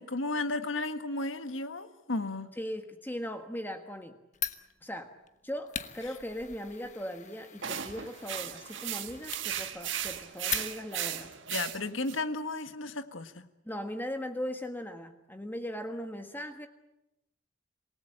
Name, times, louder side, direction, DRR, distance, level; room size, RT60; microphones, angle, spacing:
voice 1, 0.0-2.5 11.5-13.4, left 2 dB, 75° left, 10 dB, 1.5 m, -34 dB
voice 2, 2.6-4.2 4.8-5.1 5.4-11.3 13.6-16.7, equal, 10° left, 6 dB, 1.5 m, -39 dB
Fire, 4.3-11.1, left 9 dB, 35° left, 1.1 m, -41 dB
sound 1, 7.6-12.2, right 9 dB, 65° right, 1.6 m, -36 dB
27.0 x 18.5 x 8.8 m, 0.93 s
head